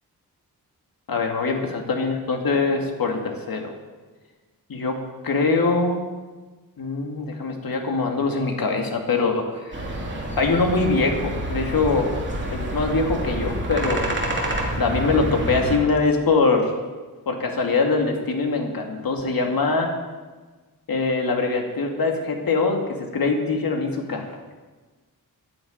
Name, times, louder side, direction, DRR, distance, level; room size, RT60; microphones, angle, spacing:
voice 1, 1.1-3.7 4.7-5.0 5.2-6.0 6.8-9.8 10.4-12.1 12.5-14.0 14.8-16.7 17.3-19.9 20.9-22.8 23.1-24.3, left 3 dB, 65° left, 3 dB, 2.4 m, -23 dB
sound 1, 9.7-15.8, right 1 dB, 30° right, 2.6 m, -28 dB
11.0 x 10.5 x 9.6 m, 1.3 s
wide cardioid pair, 165°, 38 cm